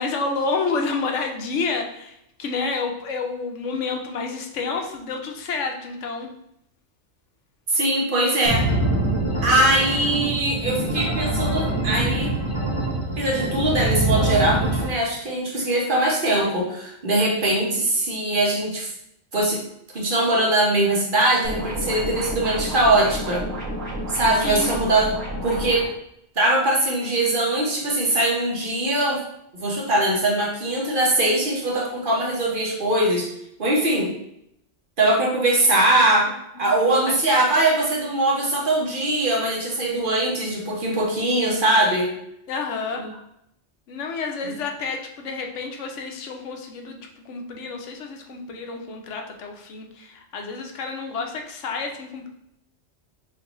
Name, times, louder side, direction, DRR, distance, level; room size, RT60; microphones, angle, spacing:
voice 1, 0.0-6.3 24.4-24.7 36.6-36.7 37.1-37.2 42.5-43.0 43.9-47.0 47.2-52.3, left 4 dB, 85° left, 3 dB, 1.0 m, -29 dB
voice 2, 7.7-8.7 9.4-12.3 13.2-18.9 19.3-19.6 19.9-23.4 24.1-25.1 25.4-25.9 26.4-29.2 29.5-33.3 33.6-34.1 35.0-36.3 36.6-42.1, right 1 dB, 50° right, -3 dB, 1.1 m, -21 dB
sound 1, 8.5-14.9, right 1 dB, 30° left, 1.0 m, -24 dB
sound 2, 21.4-25.8, equal, 15° right, 0.9 m, -30 dB
5.7 x 2.6 x 3.0 m, 0.76 s
omnidirectional pair, 1.2 m